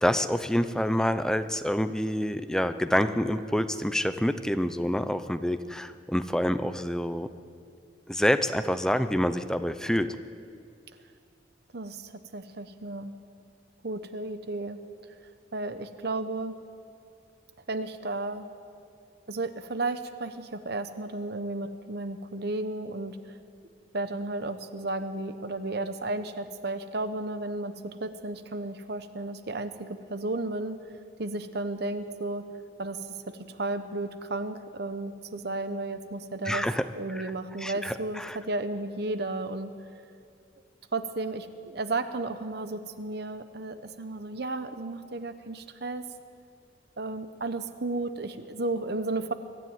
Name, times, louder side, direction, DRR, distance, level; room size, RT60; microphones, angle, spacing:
voice 1, 0.0-7.3 8.1-10.1 36.5-36.8 37.1-37.3 37.6-38.4, equal, 5° left, 10 dB, 0.7 m, -27 dB
voice 2, 11.7-13.2 13.8-14.8 15.2-16.6 17.7-18.5 19.3-23.4 23.9-30.9 31.2-32.5 32.8-36.7 37.0-39.7 40.9-46.1 47.0-49.3, right 2 dB, 60° right, 10 dB, 1.0 m, -33 dB
23.0 x 13.5 x 9.5 m, 2.4 s
head